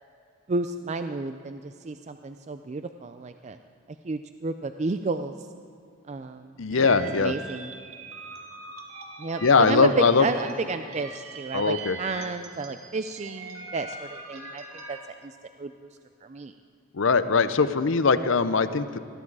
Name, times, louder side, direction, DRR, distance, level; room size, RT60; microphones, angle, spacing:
voice 1, 0.5-3.6 4.0-5.5 6.1-7.7 9.2-15.7 16.2-16.5, right 3 dB, 30° right, 9 dB, 0.4 m, -32 dB
voice 2, 6.6-7.3 9.4-10.3 11.5-12.0 16.9-19.0, left 4 dB, 60° left, 12 dB, 0.6 m, -21 dB
sound 1, 6.7-15.0, right 2 dB, 85° right, 2.1 m, -41 dB
20.5 x 13.5 x 4.8 m, 2.5 s
head